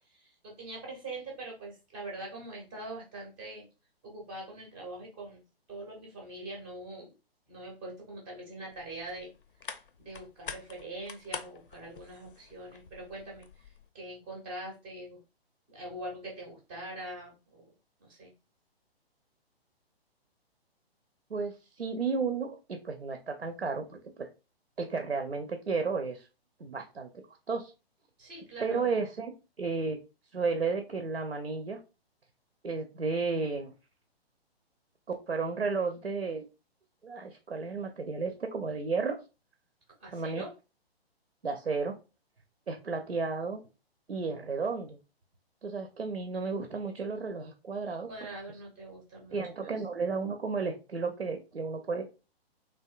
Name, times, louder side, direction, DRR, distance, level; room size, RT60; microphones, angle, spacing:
voice 1, 0.1-3.7 4.0-7.1 7.5-9.3 9.6-15.2 15.7-17.7 18.0-18.3 28.2-28.9 40.0-40.5 48.1-49.7, right 2 dB, 10° right, -1 dB, 0.4 m, -43 dB
sound 1, 8.7-13.9, left 6 dB, 60° left, 0.5 m, -46 dB
voice 2, 21.3-24.3 24.8-26.3 26.6-27.1 27.5-27.7 28.6-30.0 30.3-31.8 32.6-33.7 35.3-36.5 37.0-39.2 40.1-40.4 41.4-41.9 42.7-43.6 44.1-45.0 45.6-48.1 49.3-52.1, right 4 dB, 90° right, 6 dB, 0.5 m, -33 dB
3.3 x 2.5 x 2.3 m, 0.30 s
figure-of-eight pair, 125°, 31 cm